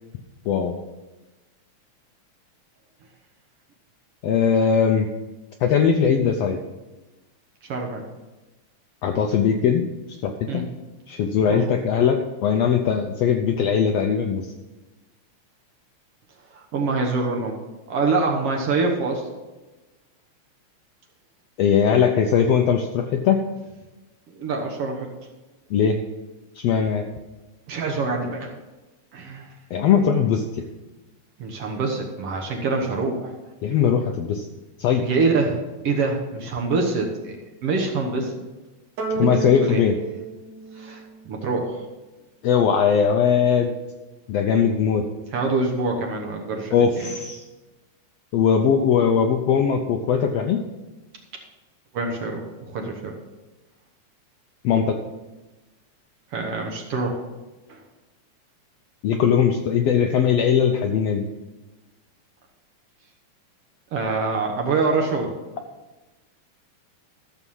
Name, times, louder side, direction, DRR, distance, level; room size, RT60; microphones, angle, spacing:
voice 1, 0.5-0.8 4.2-5.1 5.6-6.6 9.0-9.8 10.2-10.6 11.1-14.5 21.6-23.4 25.7-26.0 26.6-27.0 29.7-30.4 33.6-34.5 34.8-35.0 39.2-40.0 42.4-43.7 44.3-45.1 46.7-47.4 48.3-50.6 54.6-55.0 59.0-61.2, left 7 dB, 75° left, 4 dB, 1.5 m, -20 dB
voice 2, 7.6-8.0 10.5-10.7 11.5-11.6 16.5-17.6 17.9-19.2 24.4-25.1 27.7-28.5 29.1-29.5 31.4-33.3 35.0-37.4 37.6-38.3 39.1-39.3 39.6-39.8 40.7-41.8 45.3-46.7 51.9-53.2 56.3-57.2 57.7-57.8 63.9-65.3, right 3 dB, 60° right, 1 dB, 1.8 m, -25 dB
sound 1, 39.0-41.6, right 5 dB, 80° right, 2.9 m, -31 dB
13.0 x 7.0 x 5.5 m, 1.1 s
omnidirectional pair, 3.6 m